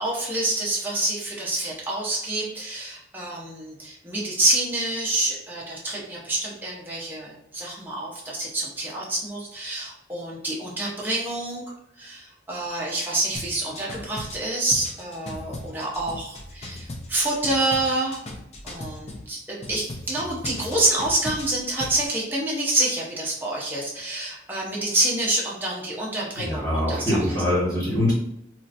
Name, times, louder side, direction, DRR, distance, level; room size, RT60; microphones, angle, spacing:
voice 1, 0.0-11.6 12.0-18.2 18.6-27.4, right 2 dB, 10° right, -5 dB, 0.6 m, -27 dB
sound 1, 13.3-19.2 19.6-22.1, left 1 dB, 35° left, 0.5 m, -37 dB
voice 2, 26.3-28.1, left 1 dB, 20° left, -10 dB, 1.2 m, -23 dB
3.1 x 2.8 x 2.5 m, 0.80 s
head